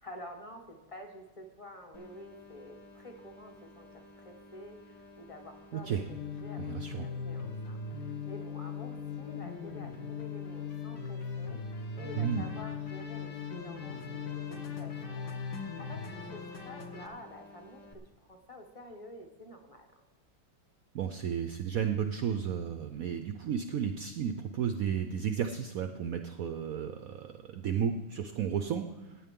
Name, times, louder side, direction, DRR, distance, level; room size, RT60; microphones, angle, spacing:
voice 1, 0.0-11.6 12.0-20.0, left 1 dB, 20° left, 3 dB, 1.0 m, -49 dB
sound 1, 1.9-17.9, left 2 dB, 35° left, 1.4 m, -54 dB
voice 2, 5.7-6.0 6.6-7.1 12.2-12.5 20.9-29.3, right 8 dB, 80° right, 7 dB, 0.7 m, -33 dB
sound 2, 6.1-17.1, left 6 dB, 60° left, 1.6 m, -39 dB
16.0 x 9.3 x 3.7 m, 1.1 s
omnidirectional pair, 2.2 m